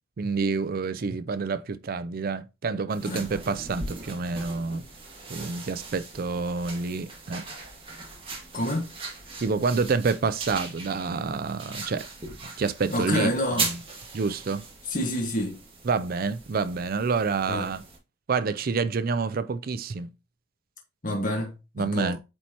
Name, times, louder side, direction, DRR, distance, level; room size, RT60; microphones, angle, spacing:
voice 1, 0.2-4.8 5.3-7.4 9.4-12.0 12.6-13.8 14.1-14.6 15.8-17.8 18.3-20.1 21.8-22.2, right 4 dB, 50° right, 0.4 m, -28 dB
sound 1, 2.9-18.0, right 3 dB, 25° right, 2.1 m, -39 dB
voice 2, 8.5-8.9 12.9-13.7 14.9-15.6 17.5-17.7 21.0-22.1, left 1 dB, 45° left, 1.5 m, -28 dB
8.7 x 4.4 x 2.9 m
head